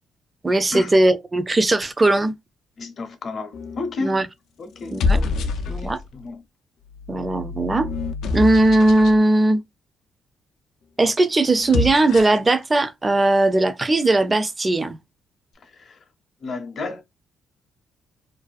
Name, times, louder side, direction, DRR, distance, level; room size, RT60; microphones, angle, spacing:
voice 1, 0.4-2.3 4.0-4.3 4.9-5.2 5.7-6.0 7.1-7.9 8.3-9.6 11.0-15.0, right 2 dB, 25° right, 0.4 m, -18 dB
voice 2, 2.8-4.2 4.6-6.4 15.7-16.0 16.4-17.0, left 3 dB, 50° left, 0.7 m, -32 dB
sound 1, 3.5-3.9 4.8-6.1 6.9-9.2 11.5-12.5, left 3 dB, 75° left, 0.3 m, -26 dB
2.5 x 2.2 x 2.4 m
cardioid pair, 90°, 0 cm